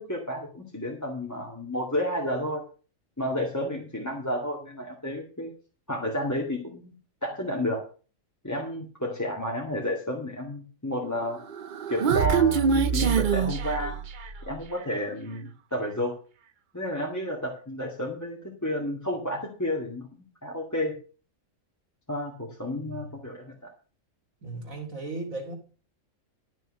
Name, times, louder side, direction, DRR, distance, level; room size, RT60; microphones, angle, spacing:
voice 1, 0.0-2.6 3.2-5.5 5.9-6.9 7.2-7.8 8.4-11.4 11.9-14.0 14.5-16.1 16.7-20.1 20.4-21.0 22.1-23.7, left 1 dB, 15° left, -2 dB, 2.1 m, -31 dB
Human voice, 11.4-14.5, right 6 dB, 50° right, 0.7 m, -24 dB
voice 2, 22.6-23.2 24.4-25.5, right 2 dB, 85° right, 2 dB, 2.7 m, -37 dB
12.5 x 6.3 x 6.4 m, 0.38 s
omnidirectional pair, 1.4 m